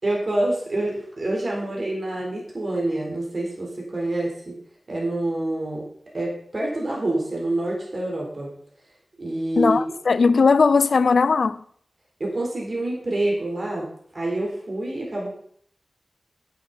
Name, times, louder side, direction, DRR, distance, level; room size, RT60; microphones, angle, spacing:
voice 1, 0.0-4.6 4.9-5.8 6.1-8.5 9.2-9.8 12.2-13.9 14.1-15.3, right 1 dB, 50° right, 4.1 m, -27 dB
voice 2, 9.6-11.6, left 4 dB, 75° left, 0.5 m, -18 dB
11.0 x 9.1 x 4.3 m
cardioid pair, 50°, 0 cm